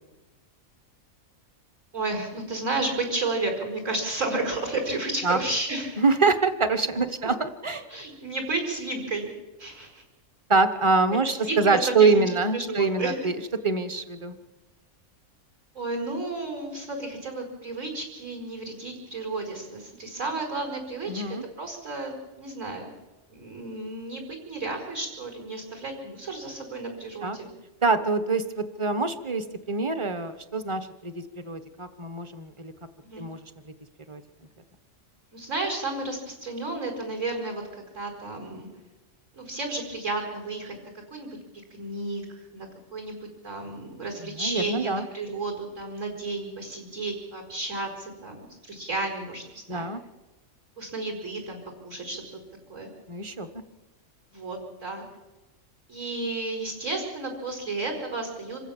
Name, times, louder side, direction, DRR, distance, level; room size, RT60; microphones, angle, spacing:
voice 1, 1.9-6.0 7.2-7.3 7.9-9.3 9.6-10.0 11.4-12.3 12.5-13.3 15.8-22.9 23.3-27.5 33.0-33.3 35.3-38.7 39.3-40.7 41.1-41.3 41.7-42.7 42.9-43.2 43.4-49.9 50.8-52.4 52.7-52.9 54.3-55.0 55.9-58.6, right 2 dB, 60° right, 2 dB, 5.2 m, -32 dB
voice 2, 6.0-7.8 10.5-13.3 13.6-14.3 21.1-21.4 27.2-27.4 27.8-32.7 33.2-33.4 34.1-34.2 44.4-45.0 49.7-50.0 53.1-53.5, right 4 dB, 25° right, 10 dB, 1.1 m, -25 dB
26.5 x 15.5 x 7.3 m, 1.1 s
omnidirectional pair, 1.5 m